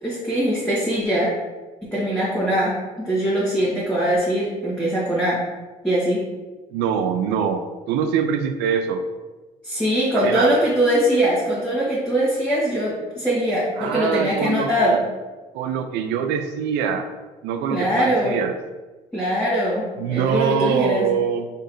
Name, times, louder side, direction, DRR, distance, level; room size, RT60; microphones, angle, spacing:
voice 1, 0.0-1.3 1.9-5.4 5.8-6.2 9.6-15.0 17.7-18.4 19.1-19.8 20.1-21.0, equal, 5° left, -9 dB, 1.5 m, -21 dB
voice 2, 6.7-9.0 10.1-10.5 13.8-15.0 15.5-17.1 17.4-18.5 20.0-21.5, right 7 dB, 90° right, 7 dB, 0.4 m, -24 dB
5.2 x 3.8 x 2.6 m, 1.2 s
cardioid pair, 110°, 17 cm